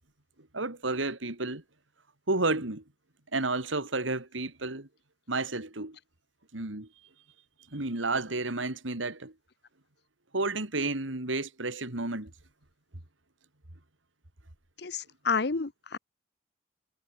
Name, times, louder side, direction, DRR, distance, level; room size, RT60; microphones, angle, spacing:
voice 1, 0.5-1.6 2.3-2.8 3.3-4.9 5.3-6.0 6.5-6.9 7.7-9.3 10.3-12.3, right 2 dB, 85° right, 3.1 m, -31 dB
voice 2, 14.8-16.0, left 4 dB, 60° left, 0.8 m, -30 dB
head